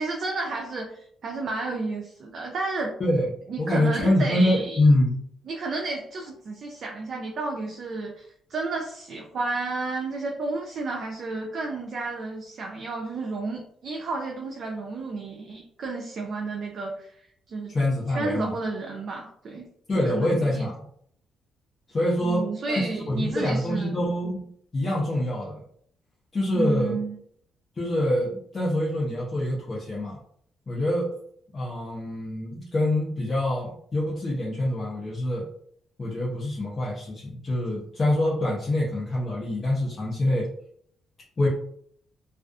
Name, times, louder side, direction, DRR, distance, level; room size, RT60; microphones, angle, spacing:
voice 1, 0.0-3.0 3.5-4.8 5.4-17.1 17.5-17.7 18.1-19.7 20.0-20.7 22.2-24.0 26.5-27.2, right 3 dB, 55° right, 1 dB, 0.4 m, -31 dB
voice 2, 3.6-5.2 17.7-18.5 19.9-20.8 21.9-24.5 24.7-25.6 26.3-27.0 27.8-30.2 30.7-31.1 31.5-35.5 36.0-40.5 41.4-41.5, left 1 dB, 30° left, -5 dB, 0.6 m, -25 dB
2.4 x 2.3 x 2.3 m, 0.65 s
cardioid pair, 90°, 0 cm